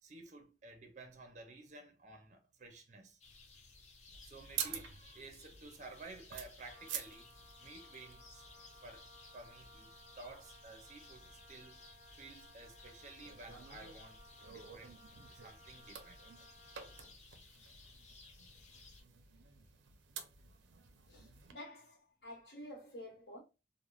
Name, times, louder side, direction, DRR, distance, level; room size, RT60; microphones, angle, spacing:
voice 1, 0.0-3.2 4.2-8.4 8.8-9.1 9.3-11.8 12.1-14.9 15.3-16.2, right 3 dB, 40° right, 0.5 m, -53 dB
sound 1, 3.2-19.0, left 3 dB, 40° left, 0.5 m, -59 dB
sound 2, 4.1-21.5, right 8 dB, 90° right, 0.5 m, -50 dB
Wind instrument woodwind instrument, 6.6-17.2, equal, 20° left, 0.8 m, -61 dB
voice 2, 21.1-23.4, left 1 dB, 60° left, 1.0 m, -50 dB
3.0 x 2.1 x 2.3 m
head